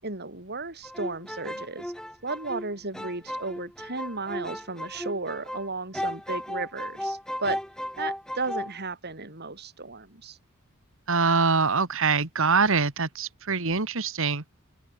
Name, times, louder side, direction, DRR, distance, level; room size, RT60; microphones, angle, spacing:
voice 1, 0.0-1.9 2.2-7.6 8.0-10.4, right 3 dB, 50° right, 6.7 m, -34 dB
sound 1, 0.8-5.7 5.9-8.7, equal, 5° left, 3.8 m, -35 dB
voice 2, 11.1-14.4, right 4 dB, 65° right, 2.3 m, -24 dB
open air
head